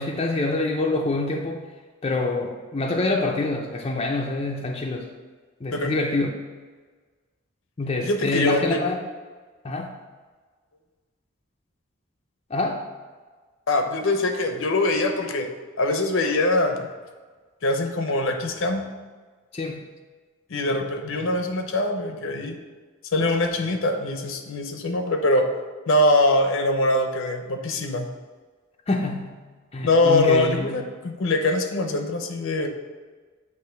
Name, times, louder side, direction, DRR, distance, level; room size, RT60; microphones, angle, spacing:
voice 1, 0.0-1.6 2.0-5.1 5.6-6.3 7.8-9.0 9.6-9.9 12.5-12.8 19.5-19.8 28.9-29.4 29.7-30.8, left 2 dB, 30° left, 1 dB, 0.5 m, -26 dB
voice 2, 8.0-8.8 9.7-9.8 13.7-15.5 15.8-16.9 17.6-18.9 20.5-22.6 23.1-25.5 25.9-28.1 29.8-32.7, left 2 dB, 65° left, 5 dB, 0.7 m, -23 dB
8.0 x 3.0 x 4.4 m, 1.4 s
head